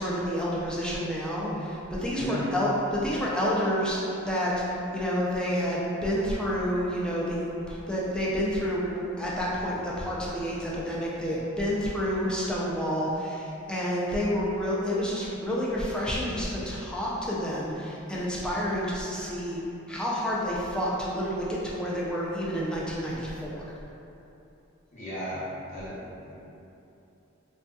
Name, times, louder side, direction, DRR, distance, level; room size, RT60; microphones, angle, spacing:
voice 1, 0.0-19.6 19.9-23.6, equal, 5° left, -6 dB, 0.4 m, -29 dB
voice 2, 24.9-25.4 25.7-26.0 26.2-26.3, equal, 35° left, -11 dB, 0.9 m, -34 dB
3.4 x 2.7 x 2.2 m, 2.9 s
head